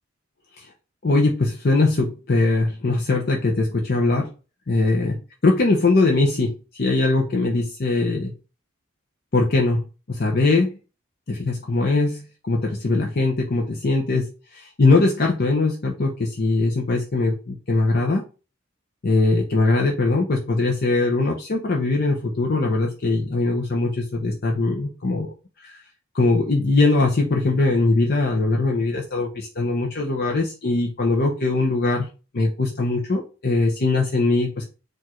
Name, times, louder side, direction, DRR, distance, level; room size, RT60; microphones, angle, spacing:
voice 1, 1.0-4.3 4.7-5.2 5.4-8.3 9.3-9.8 10.1-10.7 11.3-14.3 14.5-18.2 19.0-25.3 25.6-25.8 26.1-32.1 32.3-34.6, left 3 dB, 50° left, 0 dB, 0.7 m, -21 dB
4.7 x 2.6 x 4.3 m, 0.33 s
head